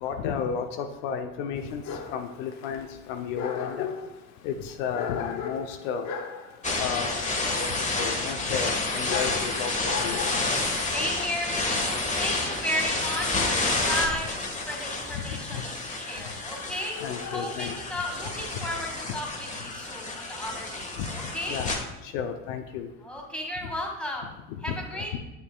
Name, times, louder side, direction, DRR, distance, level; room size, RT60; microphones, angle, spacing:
voice 1, 0.0-1.8 2.1-3.9 4.4-6.1 6.8-7.3 7.6-9.7 10.0-10.2 11.1-11.3 15.1-15.6 17.0-17.8 21.0-21.1 21.5-21.7 22.0-22.9 23.6-23.7 24.5-25.2, left 7 dB, 70° left, 6 dB, 0.7 m, -33 dB
Dog, 1.6-17.6, left 7 dB, 50° left, 0.9 m, -39 dB
sound 1, 6.6-21.8, left 2 dB, 20° left, 1.3 m, -30 dB
voice 2, 10.8-14.3 14.6-21.6 23.0-24.4 24.6-25.2, left 1 dB, 5° left, 0 dB, 1.8 m, -34 dB
7.5 x 7.1 x 2.2 m, 0.97 s
hypercardioid pair, 80°, 37 cm